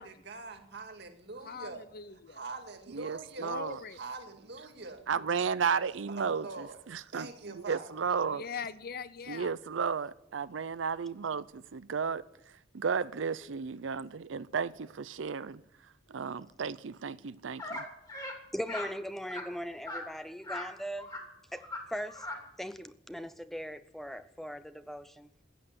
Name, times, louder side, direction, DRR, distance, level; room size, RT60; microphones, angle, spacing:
voice 1, 0.0-1.9 2.3-3.6 3.9-5.1 6.1-6.8 7.1-7.9, right 3 dB, 60° right, 2.2 m, -44 dB
voice 2, 1.4-2.4 3.4-4.0 8.3-9.5, left 5 dB, 50° left, 0.8 m, -41 dB
voice 3, 2.9-3.8 5.1-8.4 9.3-12.2 12.7-15.6 16.1-17.8, right 6 dB, 90° right, 0.6 m, -33 dB
sound 1, 17.6-17.8 18.1-18.4 18.7-18.9 19.3-19.4 19.9-20.0 20.4-20.7 21.0-21.2 21.5-21.8 22.1-22.4, left 2 dB, 20° left, 2.9 m, -39 dB
voice 4, 18.5-21.1 21.5-22.3 22.6-25.3, equal, ahead, 0.6 m, -39 dB
15.5 x 9.0 x 9.6 m
head